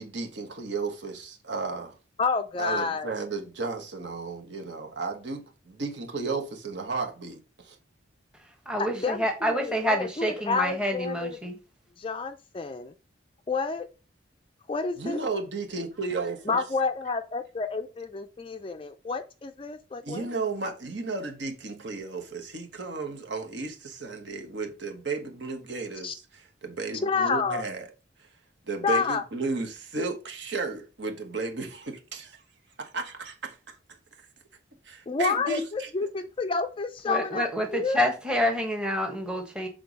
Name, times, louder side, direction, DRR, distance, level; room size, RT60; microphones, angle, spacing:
voice 1, 0.0-1.9 2.6-7.8 15.0-16.6 20.0-26.2 26.6-27.9 28.7-32.4 32.8-33.6 34.8-35.9, right 3 dB, 65° right, 1.2 m, -33 dB
voice 2, 2.2-3.1 8.8-11.4 12.0-12.9 13.5-13.9 14.7-15.2 16.5-20.3 26.0-26.1 27.0-27.6 28.8-29.2 35.1-38.0, left 4 dB, 25° left, 0.4 m, -29 dB
voice 3, 8.7-11.6 37.1-39.7, equal, 5° right, 1.1 m, -28 dB
6.8 x 3.8 x 4.0 m
head